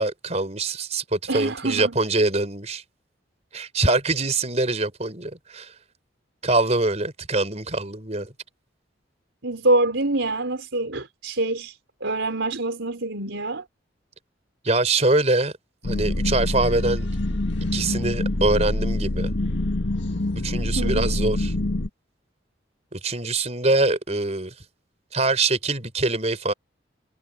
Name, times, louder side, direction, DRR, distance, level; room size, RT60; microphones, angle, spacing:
voice 1, 0.0-2.8 3.5-5.7 6.4-8.3 14.6-15.5 15.8-17.1 17.7-19.3 20.4-21.5 22.9-24.5 25.1-26.5, right 2 dB, 35° right, 4.8 m, -24 dB
voice 2, 1.3-2.0 9.4-13.6 20.8-21.2, right 2 dB, 85° right, 4.4 m, -25 dB
sound 1, 15.8-21.9, left 1 dB, 80° left, 1.6 m, -25 dB
head